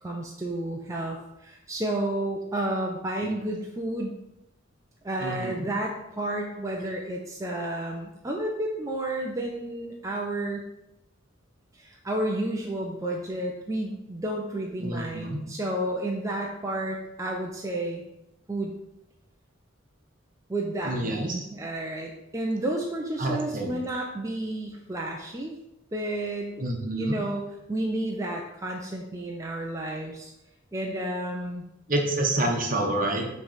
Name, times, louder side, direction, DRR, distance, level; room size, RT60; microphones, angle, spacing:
voice 1, 0.0-4.1 5.0-10.7 11.7-18.0 18.5-18.7 20.5-25.5 25.9-26.5 27.0-30.3 30.7-31.6, right 1 dB, 15° right, -1 dB, 0.6 m, -31 dB
voice 2, 5.2-5.7 14.8-15.4 20.8-21.4 23.2-23.8 26.6-27.2 31.9-33.3, right 1 dB, 45° right, 2 dB, 1.0 m, -28 dB
6.0 x 3.3 x 5.6 m, 0.87 s
head